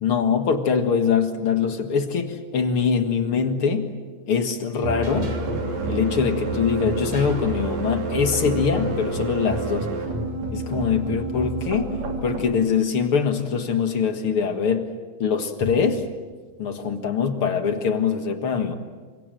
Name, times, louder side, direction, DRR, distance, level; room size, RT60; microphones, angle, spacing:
voice 1, 0.0-3.9 4.3-5.3 5.9-9.9 10.5-11.9 12.2-14.9 15.2-16.0 16.6-18.8, left 6 dB, 50° left, 7 dB, 2.3 m, -23 dB
sound 1, 4.8-12.5, right 2 dB, 60° right, 4.3 m, -28 dB
28.5 x 25.0 x 7.7 m, 1.4 s
omnidirectional pair, 3.5 m